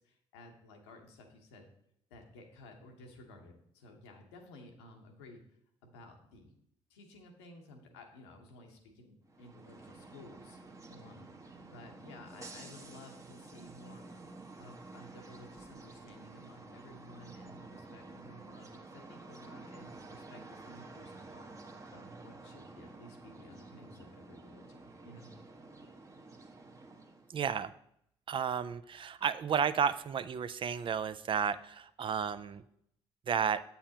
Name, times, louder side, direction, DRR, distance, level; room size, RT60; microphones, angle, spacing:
voice 1, 0.0-1.7 2.1-5.4 5.8-6.5 6.9-10.6 10.9-14.1 14.6-21.5 21.9-25.3, left 2 dB, 85° left, 2 dB, 1.0 m, -54 dB
sound 1, 9.2-27.3, right 3 dB, 25° right, 1.0 m, -51 dB
voice 2, 27.3-27.7 28.3-32.6 33.3-33.6, right 7 dB, 40° right, 13 dB, 0.4 m, -32 dB
7.6 x 7.0 x 2.9 m, 0.72 s
hypercardioid pair, 50°, 13 cm